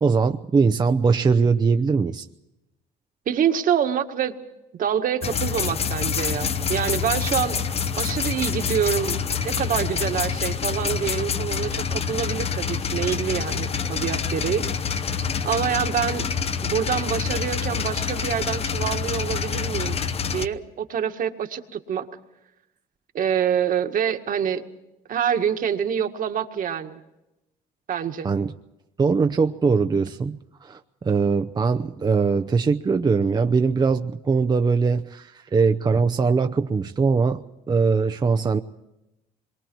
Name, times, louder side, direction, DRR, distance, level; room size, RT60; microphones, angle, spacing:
voice 1, 0.0-2.3 28.2-28.5 29.0-38.6, right 5 dB, 25° right, 7 dB, 0.7 m, -21 dB
voice 2, 3.3-4.3 4.7-7.6 8.0-15.1 15.4-16.3 16.6-20.0 20.3-22.1 23.1-24.6 25.1-27.0 27.9-28.3, right 8 dB, 55° right, 6 dB, 1.9 m, -26 dB
sound 1, 5.2-20.5, left 6 dB, 35° left, 0.9 m, -26 dB
27.5 x 23.0 x 4.6 m, 0.92 s
cardioid pair, 110°, 17 cm